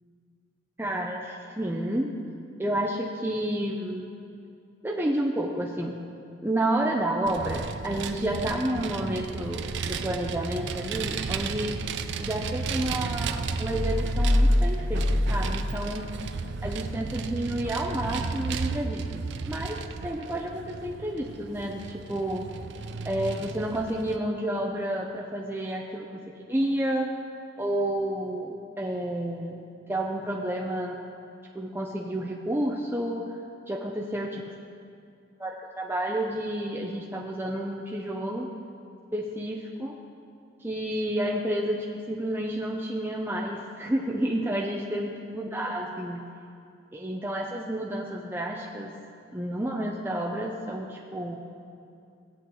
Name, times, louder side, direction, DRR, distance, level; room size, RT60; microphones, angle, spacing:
voice 1, 0.8-2.1 2.6-4.1 4.8-6.0 6.4-11.8 12.2-16.1 16.6-22.5 23.0-27.1 27.6-29.6 29.9-31.0 31.5-33.3 33.7-34.5 35.4-38.5 39.1-39.9 40.6-46.2 46.9-49.0 49.3-51.7, right 1 dB, 10° right, -2 dB, 0.6 m, -30 dB
Vehicle, 7.3-24.2, right 5 dB, 65° right, 0.5 m, -34 dB
sound 1, 13.6-16.5, left 1 dB, 55° left, 3.0 m, -25 dB
16.5 x 8.1 x 3.8 m, 2.6 s
head